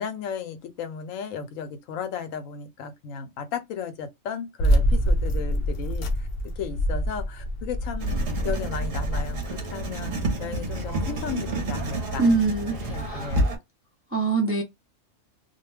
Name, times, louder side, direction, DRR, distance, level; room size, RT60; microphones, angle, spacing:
voice 1, 0.0-8.1 8.4-12.3 12.7-13.5, left 6 dB, 80° left, 1.0 m, -35 dB
sound 1, 4.6-9.4, equal, 60° left, 0.7 m, -25 dB
Writing, 8.0-13.6, right 1 dB, 50° right, 0.8 m, -29 dB
voice 2, 12.2-12.8 13.1-13.3 14.1-14.6, right 3 dB, 15° right, 0.4 m, -23 dB
2.4 x 2.2 x 3.2 m
omnidirectional pair, 1.3 m